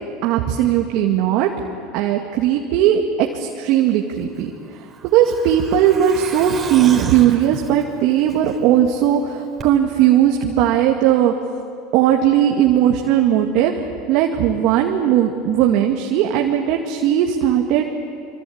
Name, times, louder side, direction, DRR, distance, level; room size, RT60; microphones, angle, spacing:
voice 1, 0.2-1.5 1.9-3.0 3.3-4.5 5.1-11.3 11.9-17.8, right 10 dB, 65° right, 1 dB, 2.1 m, -17 dB
Truck, 4.2-8.9 9.2-9.3 9.6-9.7, right 5 dB, 30° right, 4.0 m, -34 dB
25.5 x 25.5 x 8.8 m, 2.4 s
hypercardioid pair, 90°, 0 cm